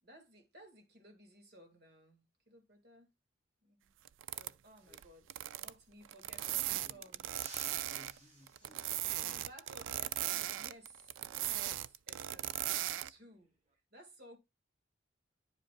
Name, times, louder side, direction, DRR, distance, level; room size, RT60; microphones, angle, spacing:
voice 1, 0.0-3.1 3.6-3.9 4.3-5.3 5.6-7.3 9.1-13.5 13.9-14.4, right 1 dB, 50° right, 1.7 m, -58 dB
sound 1, 4.0-4.5 4.9-5.0 5.3-5.7 6.0-8.2 8.5-13.1, right 13 dB, 75° right, 0.3 m, -38 dB
voice 2, 4.8-5.3 6.8-7.2 7.7-8.9, left 2 dB, 10° left, 1.5 m, -62 dB
sound 2, 6.0-6.9 7.3-9.1 11.6-11.9 13.3-13.7, right 3 dB, 35° right, 1.0 m, -56 dB
10.5 x 5.1 x 2.2 m
head